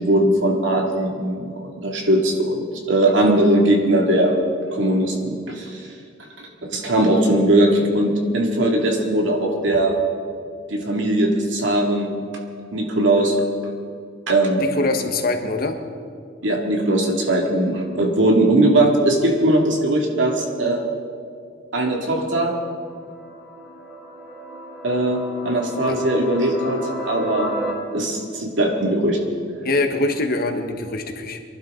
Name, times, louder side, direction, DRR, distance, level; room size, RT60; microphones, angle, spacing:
voice 1, 0.0-4.4 4.7-5.8 6.4-10.0 10.7-12.1 12.7-13.3 14.3-14.6 16.4-20.8 21.7-22.5 24.8-27.5 27.9-29.2, right 1 dB, 75° right, 1 dB, 2.4 m, -20 dB
voice 2, 14.8-15.8 25.9-26.0 29.6-31.4, left 2 dB, 50° left, 5 dB, 1.3 m, -23 dB
sound 1, 22.3-27.7, right 1 dB, 10° right, 3.7 m, -33 dB
23.5 x 11.5 x 3.8 m, 2.3 s
head